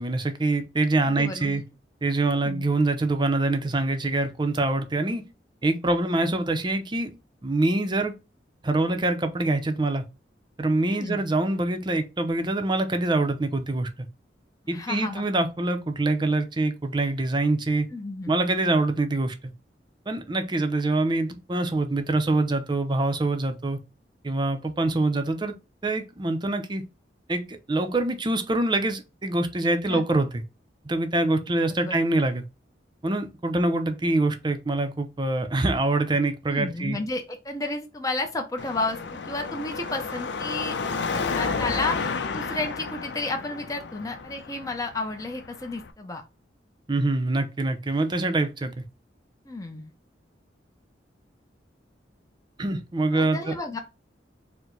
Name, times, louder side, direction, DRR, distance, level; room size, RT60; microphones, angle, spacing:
voice 1, 0.0-1.6 2.0-5.3 5.6-7.2 7.4-8.1 8.6-10.0 10.6-13.9 14.7-17.9 18.3-19.3 20.1-23.8 24.2-25.5 25.8-26.8 27.3-30.4 30.8-32.4 33.0-37.0 46.9-48.8 52.6-53.5, right 2 dB, 25° right, 0.6 m, -25 dB
voice 2, 1.2-1.6 2.3-2.6 10.9-11.3 14.7-15.2 17.9-18.3 29.9-30.0 31.8-32.0 36.5-40.7 41.1-46.2 49.5-49.9 53.1-53.8, left 2 dB, 20° left, 0.6 m, -32 dB
Car passing by / Traffic noise roadway noise / Engine, 38.6-45.9, left 4 dB, 75° left, 0.6 m, -32 dB
4.5 x 2.1 x 3.8 m
head